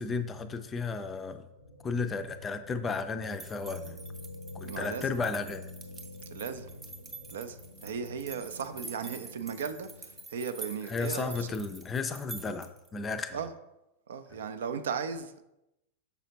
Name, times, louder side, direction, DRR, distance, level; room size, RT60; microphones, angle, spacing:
voice 1, 0.0-1.4 1.8-4.0 4.5-5.7 10.9-13.4, left 4 dB, 20° left, 0.4 m, -33 dB
sound 1, 1.6-8.8, left 2 dB, 80° right, 0.9 m, -55 dB
sound 2, 3.3-12.9, right 3 dB, 15° right, 0.8 m, -47 dB
sound 3, 3.6-10.3, left 2 dB, 80° left, 0.5 m, -47 dB
voice 2, 4.6-5.1 6.3-6.7 7.3-11.5 13.3-13.5 14.1-15.4, right 6 dB, 60° right, 0.4 m, -36 dB
6.8 x 4.9 x 2.9 m
figure-of-eight pair, 90°, 0 cm